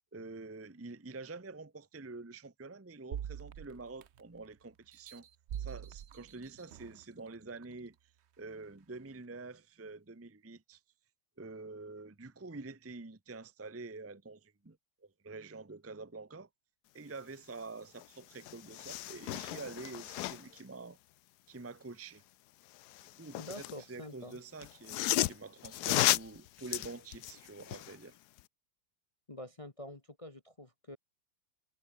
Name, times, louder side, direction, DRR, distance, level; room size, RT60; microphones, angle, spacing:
voice 1, 0.1-5.3 5.6-7.9 8.4-10.8 11.4-14.8 15.0-16.5 16.9-21.0 21.5-22.2 23.2-28.2, right 3 dB, 10° right, 0.8 m, -47 dB
sound 1, 3.1-4.4 4.9-7.0 7.6-7.7, right 9 dB, 70° right, 0.6 m, -44 dB
sound 2, 18.0-18.1 18.4-20.6 22.7-23.8 24.6-28.0 28.4-28.5, left 16 dB, 75° left, 0.9 m, -34 dB
voice 2, 23.4-24.4 29.3-31.0, left 1 dB, 20° left, 1.0 m, -47 dB
omnidirectional pair, 2.1 m